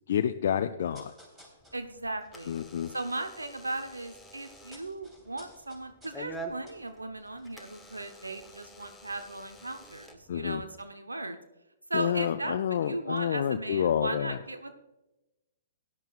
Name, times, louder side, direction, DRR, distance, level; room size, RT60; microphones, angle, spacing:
voice 1, 0.1-1.1 2.5-2.9 10.3-10.6 11.9-14.4, left 9 dB, 55° left, 7 dB, 0.4 m, -29 dB
sound 1, 0.8-3.7 3.9-8.5 8.8-8.9, equal, 15° right, 3.5 m, -58 dB
Door / Alarm, 1.6-10.8, right 2 dB, 5° left, 1.0 m, -48 dB
voice 2, 1.7-2.5 2.9-11.4 11.9-14.8, right 2 dB, 90° right, 8 dB, 0.9 m, -37 dB
17.5 x 10.5 x 2.4 m, 1.0 s
figure-of-eight pair, 120°, 0 cm